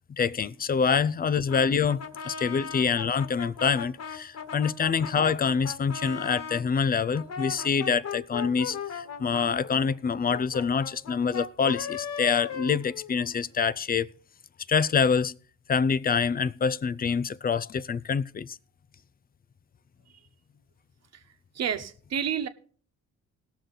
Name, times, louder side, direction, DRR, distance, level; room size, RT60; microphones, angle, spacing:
voice 1, 0.1-14.1 14.7-15.3 15.7-18.6, left 6 dB, 30° left, 0.5 m, -26 dB
Brass instrument, 1.5-6.7 7.1-13.4, left 6 dB, 60° left, 1.6 m, -38 dB
voice 2, 21.5-22.5, right 8 dB, 60° right, 1.2 m, -30 dB
18.5 x 6.6 x 3.9 m
cardioid pair, 90°, 30 cm